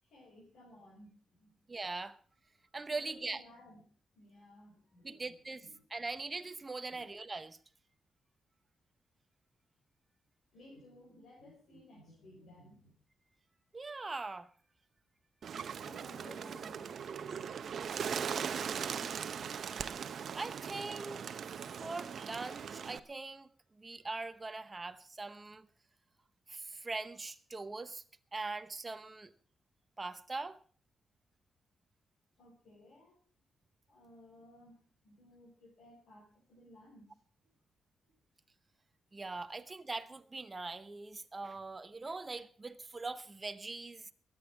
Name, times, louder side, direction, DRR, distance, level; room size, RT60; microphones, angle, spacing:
voice 1, 0.0-1.6 2.9-3.8 4.1-6.1 6.9-7.0 10.5-12.9 15.6-17.7 32.4-33.2 33.9-37.1, left 1 dB, 75° left, 5.0 m, -58 dB
voice 2, 1.7-2.2 2.7-3.4 5.0-5.6 5.9-7.6 13.7-14.5 18.0-19.0 20.3-21.2 21.8-23.5 23.8-25.7 26.5-28.0 28.3-29.3 30.0-30.6 39.1-44.1, right 3 dB, 20° right, 0.9 m, -42 dB
Bird, 15.4-23.0, right 7 dB, 55° right, 0.8 m, -39 dB
22.0 x 9.0 x 4.7 m
wide cardioid pair, 150°, 0 cm